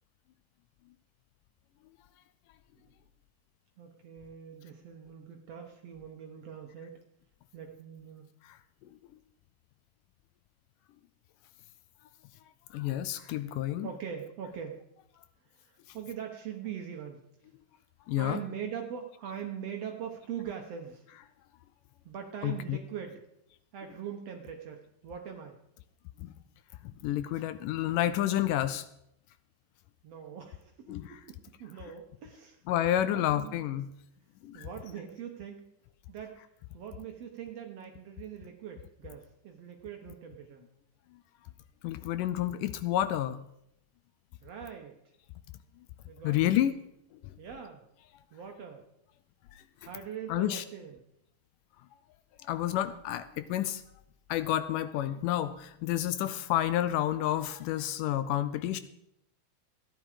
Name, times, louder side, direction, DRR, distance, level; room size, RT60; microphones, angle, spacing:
voice 1, 3.8-7.0 7.5-8.3 13.8-14.8 15.5-17.2 18.1-21.1 22.0-23.2 23.7-25.5 30.0-32.6 33.0-33.6 34.5-35.6 36.1-36.3 36.7-40.6 44.4-44.9 46.1-46.5 47.4-47.8 48.3-48.8 49.8-51.0, right 8 dB, 65° right, 3 dB, 1.7 m, -42 dB
voice 2, 12.7-13.9 18.1-18.4 22.4-22.8 26.2-26.3 27.0-28.9 30.9-31.2 32.7-33.9 34.4-34.7 41.8-43.4 46.2-46.7 50.3-50.6 52.4-53.8 54.3-58.8, left 12 dB, 80° left, 13 dB, 2.0 m, -29 dB
14.5 x 10.0 x 5.0 m, 0.78 s
omnidirectional pair, 4.0 m